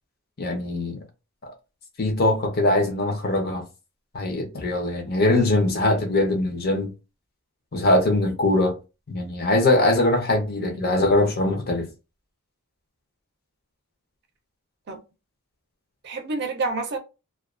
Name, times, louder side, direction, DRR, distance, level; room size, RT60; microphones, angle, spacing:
voice 1, 0.4-1.0 1.4-1.5 2.0-3.7 4.1-6.9 7.7-8.7 9.1-11.9, left 2 dB, 45° left, 0.7 m, -22 dB
voice 2, 10.6-11.1 14.9-15.0 16.0-17.0, right 3 dB, 50° right, 0.5 m, -29 dB
2.3 x 2.3 x 2.3 m
head